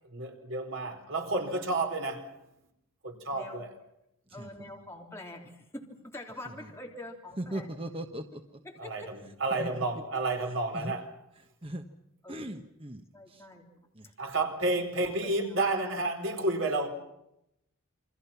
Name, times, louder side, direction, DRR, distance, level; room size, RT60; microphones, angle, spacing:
voice 1, 0.1-2.3 3.0-3.7 8.8-11.1 14.2-16.9, right 2 dB, 60° right, 4.6 m, -31 dB
voice 2, 3.3-3.6 4.3-7.7 8.7-9.1 9.6-9.7 12.2-12.5 13.1-13.7 14.3-15.4 15.8-16.0, left 1 dB, 10° left, 3.5 m, -45 dB
voice 3, 7.4-8.6 9.5-9.9 10.7-10.9 11.6-11.9 12.3-13.5 13.9-14.1, right 1 dB, 25° right, 1.2 m, -39 dB
28.5 x 25.5 x 5.9 m
head